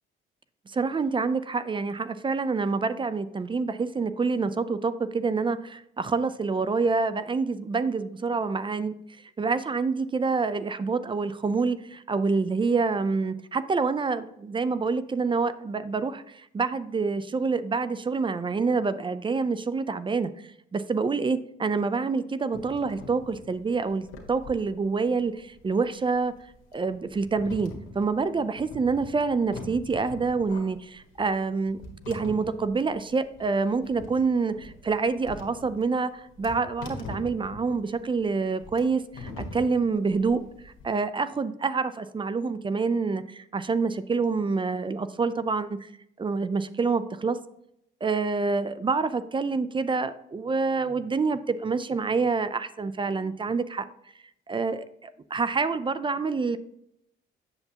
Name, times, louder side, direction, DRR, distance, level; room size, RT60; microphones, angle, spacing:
voice 1, 0.7-8.9 9.4-20.3 20.7-26.3 26.7-31.8 32.1-45.9 46.2-47.4 48.0-53.9 54.5-56.6, right 4 dB, 25° right, 14 dB, 0.4 m, -27 dB
sound 1, 22.5-40.8, left 3 dB, 90° left, 1.4 m, -44 dB
8.1 x 6.7 x 2.8 m, 0.77 s
cardioid pair, 90°, 20 cm